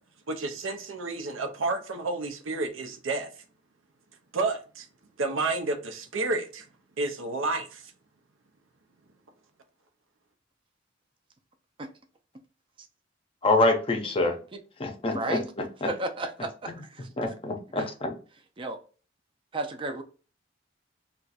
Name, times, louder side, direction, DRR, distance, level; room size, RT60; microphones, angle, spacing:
voice 1, 0.3-3.3 4.3-4.9 5.2-6.6 7.0-7.8, right 3 dB, 90° right, 0.6 m, -30 dB
voice 2, 13.4-14.4 14.8-15.9 16.7-16.8 17.2-18.2, left 2 dB, 30° left, 0.5 m, -26 dB
voice 3, 15.2-15.5 15.8-17.1 17.8-17.9 18.6-18.8 19.5-20.0, right 2 dB, 25° right, 0.4 m, -33 dB
2.4 x 2.2 x 4.0 m
head